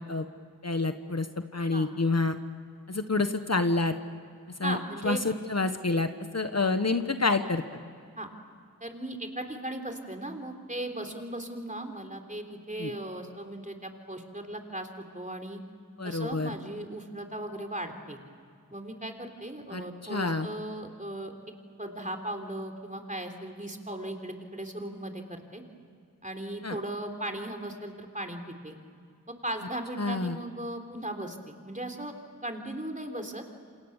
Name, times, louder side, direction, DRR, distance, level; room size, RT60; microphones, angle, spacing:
voice 1, 0.6-1.3 1.5-2.4 2.9-3.9 4.6-4.8 5.0-7.6 12.8-12.9 16.0-16.5 19.7-20.5 26.6-26.8 30.0-30.4, left 3 dB, 50° left, 8 dB, 1.3 m, -28 dB
voice 2, 1.6-1.9 4.6-5.3 8.2-8.3 8.8-15.6 16.0-18.2 18.7-25.6 26.2-28.8 29.3-32.1 32.4-33.4, right 1 dB, 25° right, 4 dB, 3.5 m, -37 dB
28.5 x 27.0 x 7.3 m, 2.3 s
wide cardioid pair, 50°, 34 cm